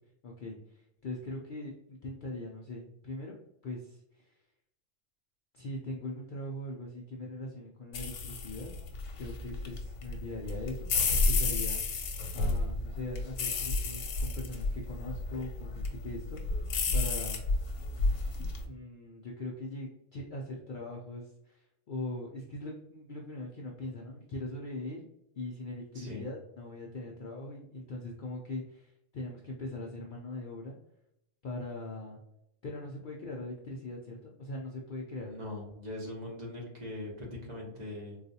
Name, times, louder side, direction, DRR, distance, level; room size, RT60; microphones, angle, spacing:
voice 1, 0.2-4.4 5.5-8.7 9.2-11.8 12.3-16.7 16.9-17.4 18.6-25.1 25.4-30.7 31.4-32.2 32.6-35.3, left 2 dB, 60° left, -1 dB, 0.5 m, -41 dB
sound 1, 7.9-18.6, left 3 dB, 85° left, 1.0 m, -32 dB
voice 2, 35.1-38.2, left 1 dB, 40° right, -3 dB, 0.9 m, -41 dB
3.9 x 2.4 x 2.7 m, 0.81 s
omnidirectional pair, 1.3 m